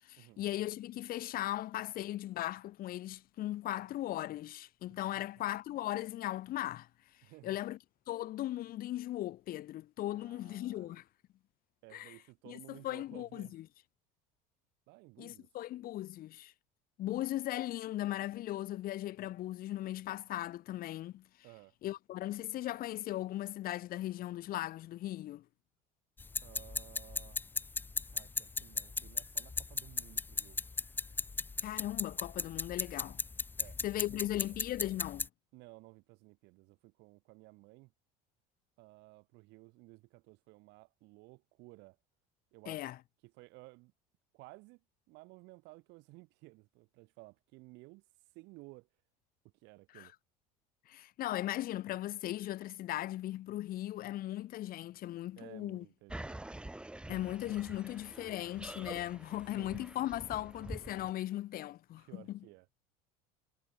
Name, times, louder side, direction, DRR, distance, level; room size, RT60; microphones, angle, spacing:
voice 1, 0.0-6.9 7.4-7.8 8.1-11.0 11.9-12.1 12.5-13.7 15.2-16.5 17.0-21.2 21.8-25.4 31.6-33.2 33.8-35.3 42.7-43.0 49.9-50.1 50.9-55.8 57.1-62.4, left 14 dB, 50° left, 1.1 m, -38 dB
voice 2, 4.9-5.3 7.2-7.6 10.1-11.0 11.8-13.5 14.9-15.5 21.4-21.7 26.4-27.5 28.1-30.6 33.6-33.8 34.0-34.6 35.5-37.9 38.8-42.0 42.5-42.8 43.2-43.9 44.3-48.0 48.3-48.9 49.6-50.1 55.4-56.6 59.6-59.9 62.0-62.7, right 24 dB, 70° right, 3.4 m, -56 dB
sound 1, 26.2-35.3, left 3 dB, 10° left, 0.3 m, -37 dB
sound 2, 56.1-61.1, right 1 dB, 5° right, 0.7 m, -47 dB
supercardioid pair, 90°, 19 cm